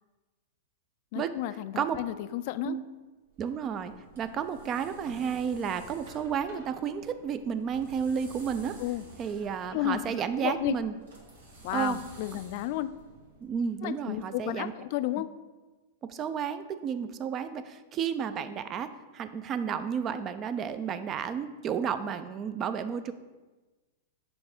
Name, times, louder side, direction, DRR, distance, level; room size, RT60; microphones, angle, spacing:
voice 1, 1.1-2.8 8.8-9.0 9.7-10.7 11.6-12.9 13.8-15.3, left 14 dB, 55° left, 13 dB, 0.3 m, -32 dB
sound 1, 3.3-13.7, right 1 dB, 80° right, 1.6 m, -51 dB
voice 2, 3.4-8.8 9.2-10.9 11.7-12.0 13.4-14.7 15.2-15.3 16.0-23.1, right 7 dB, 30° right, 11 dB, 0.4 m, -32 dB
6.0 x 3.5 x 5.0 m, 1.2 s
hypercardioid pair, 110°, 0 cm